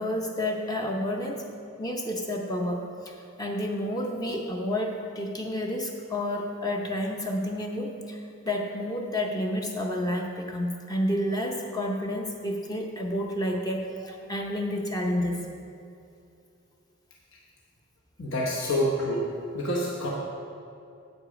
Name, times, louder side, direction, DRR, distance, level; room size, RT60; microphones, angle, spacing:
voice 1, 0.0-1.4 1.8-15.4, left 1 dB, 15° left, 1 dB, 0.6 m, -30 dB
voice 2, 18.2-19.3 19.5-20.1, equal, 60° left, -4 dB, 1.1 m, -27 dB
8.2 x 8.1 x 4.9 m, 2.5 s
head